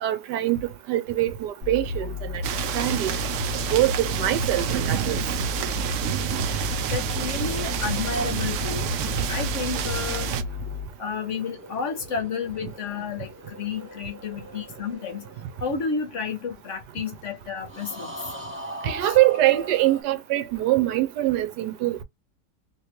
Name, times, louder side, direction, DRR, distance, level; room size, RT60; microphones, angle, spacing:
voice 1, 0.0-2.4 2.7-3.1 3.7-5.2 9.0-9.1 18.8-22.0, right 15 dB, 90° right, 1.2 m, -23 dB
sound 1, 1.6-10.8, left 5 dB, 45° right, 1.4 m, -33 dB
sound 2, 2.4-10.4, right 9 dB, 70° right, 0.7 m, -28 dB
voice 2, 6.9-8.9 9.3-10.3 11.0-15.3 15.6-18.1 19.0-19.1, left 5 dB, 60° left, 0.9 m, -31 dB
sound 3, 11.0-16.6 17.7-20.0, right 1 dB, 15° right, 0.5 m, -41 dB
3.0 x 2.9 x 2.9 m
omnidirectional pair, 1.8 m